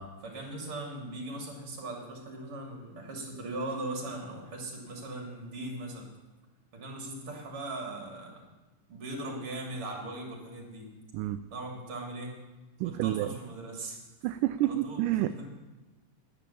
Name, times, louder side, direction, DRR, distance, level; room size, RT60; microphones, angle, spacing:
voice 1, 0.2-6.1 6.7-8.4 8.9-10.9 11.5-12.4 12.8-14.0 14.6-15.5, right 2 dB, 40° right, 0 dB, 3.5 m, -39 dB
voice 2, 12.8-13.3 14.2-15.5, right 14 dB, 80° right, 9 dB, 2.0 m, -29 dB
10.5 x 10.0 x 6.9 m, 1.1 s
omnidirectional pair, 3.8 m